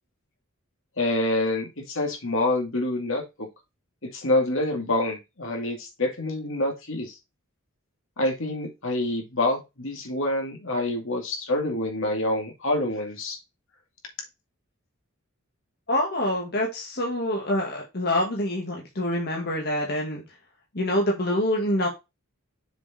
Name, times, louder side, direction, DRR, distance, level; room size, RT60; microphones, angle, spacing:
voice 1, 1.0-3.5 4.0-7.2 8.2-13.4, left 2 dB, 65° left, 2 dB, 2.3 m, -27 dB
voice 2, 15.9-20.2 20.7-21.9, left 1 dB, 50° left, -1 dB, 1.8 m, -26 dB
7.0 x 4.8 x 4.2 m, 0.23 s
head